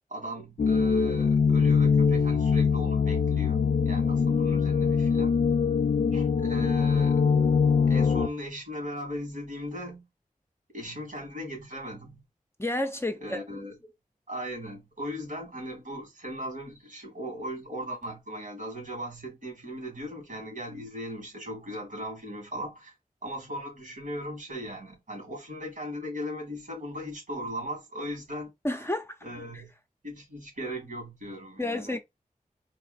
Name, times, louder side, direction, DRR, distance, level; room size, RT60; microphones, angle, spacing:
voice 1, 0.1-3.6 3.8-5.3 6.1-7.3 7.9-10.1 10.7-12.2 13.2-13.9 14.3-22.9 23.2-28.8 29.2-29.7 30.0-32.0, equal, 70° right, 3.0 m, -38 dB
sound 1, 0.6-8.3, left 6 dB, 55° left, 0.5 m, -23 dB
voice 2, 12.6-13.4 28.6-29.2 31.6-32.0, left 1 dB, 15° left, 0.7 m, -30 dB
4.1 x 2.9 x 4.2 m
wide cardioid pair, 70°, 14 cm